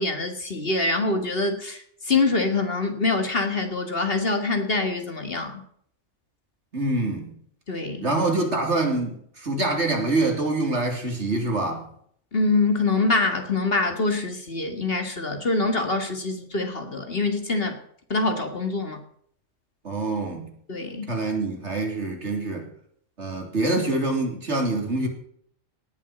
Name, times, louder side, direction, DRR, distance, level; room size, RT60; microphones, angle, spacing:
voice 1, 0.0-5.6 7.7-8.1 12.3-17.8 18.1-19.0 20.7-21.1, left 3 dB, 50° left, 7 dB, 2.1 m, -25 dB
voice 2, 6.7-7.3 8.0-11.9 19.8-20.5 21.1-22.7 23.2-25.1, right 2 dB, 60° right, 2 dB, 3.6 m, -25 dB
18.5 x 7.5 x 7.9 m, 0.63 s
omnidirectional pair, 1.3 m